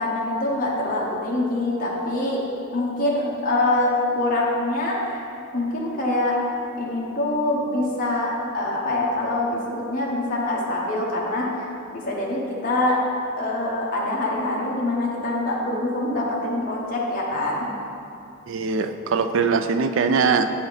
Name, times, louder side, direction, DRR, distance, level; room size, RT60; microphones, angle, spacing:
voice 1, 0.0-2.4 2.7-6.4 6.8-11.5 11.9-13.0 13.4-17.7, left 2 dB, 40° left, -4 dB, 0.9 m, -24 dB
voice 2, 18.5-20.6, right 5 dB, 60° right, 9 dB, 0.3 m, -22 dB
8.1 x 4.1 x 4.0 m, 2.6 s
head